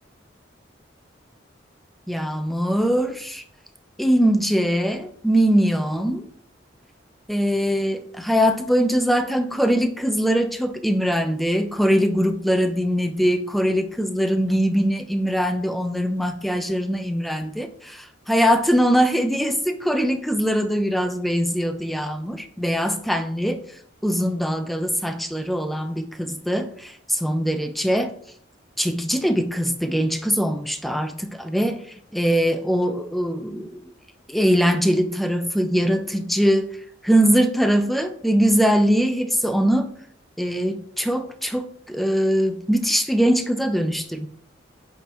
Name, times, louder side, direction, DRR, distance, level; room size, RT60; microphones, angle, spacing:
voice 1, 2.1-3.4 4.0-6.3 7.3-23.6 24.0-28.1 28.8-31.8 32.1-33.9 34.3-36.7 37.0-39.9 40.4-44.3, equal, ahead, 7 dB, 0.4 m, -22 dB
9.1 x 3.6 x 3.0 m, 0.64 s
head